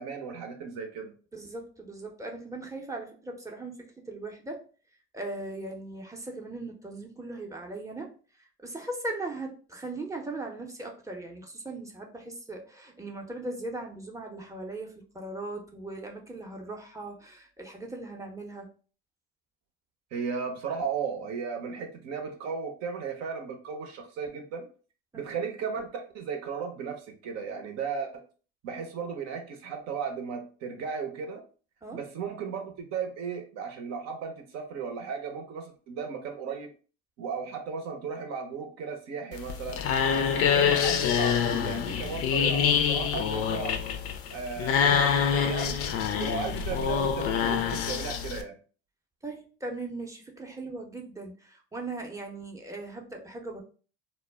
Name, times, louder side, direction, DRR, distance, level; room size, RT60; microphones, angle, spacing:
voice 1, 0.0-1.1 20.1-24.7 25.1-28.2 28.6-31.4 31.9-36.7 37.2-39.8 40.1-43.7 44.3-45.8 46.2-48.6, right 6 dB, 55° right, 4 dB, 0.7 m, -35 dB
voice 2, 1.3-3.8 4.1-4.6 5.1-8.1 8.6-18.7 25.1-25.3 31.8-32.0 46.7-46.8 49.2-53.6, right 2 dB, 10° right, 1 dB, 0.7 m, -39 dB
sound 1, 39.3-48.4, left 7 dB, 45° left, 0.5 m, -26 dB
2.1 x 2.1 x 3.3 m, 0.39 s
hypercardioid pair, 75°, 31 cm